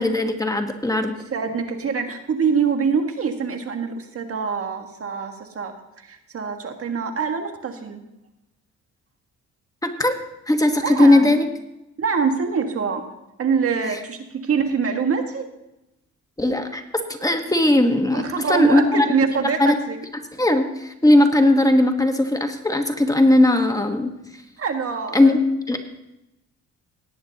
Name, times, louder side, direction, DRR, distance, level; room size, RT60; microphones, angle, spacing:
voice 1, 0.0-1.1 9.8-10.2 10.5-11.4 16.4-16.8 17.1-19.1 19.6-19.7 20.4-24.1 25.1-25.4 25.7-25.8, left 1 dB, 10° left, 4 dB, 1.2 m, -18 dB
voice 2, 1.3-8.0 10.8-11.3 12.0-13.0 13.4-15.5 18.1-20.0 24.6-25.4, right 5 dB, 50° right, 5 dB, 1.5 m, -24 dB
18.0 x 9.5 x 2.8 m, 0.91 s
cardioid pair, 90°, 30 cm